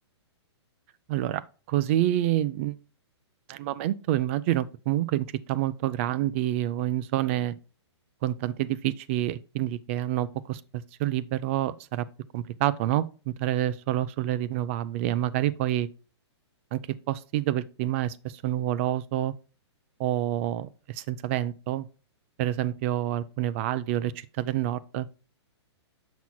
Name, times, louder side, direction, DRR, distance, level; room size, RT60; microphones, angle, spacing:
voice 1, 1.1-1.4 1.7-2.7 3.5-7.6 8.2-10.6 11.0-12.1 12.3-15.9 16.7-16.8 17.1-19.3 20.0-21.9 22.4-25.1, right 13 dB, 30° right, 0.3 m, -28 dB
7.0 x 6.0 x 2.2 m
hypercardioid pair, 155°, 15 cm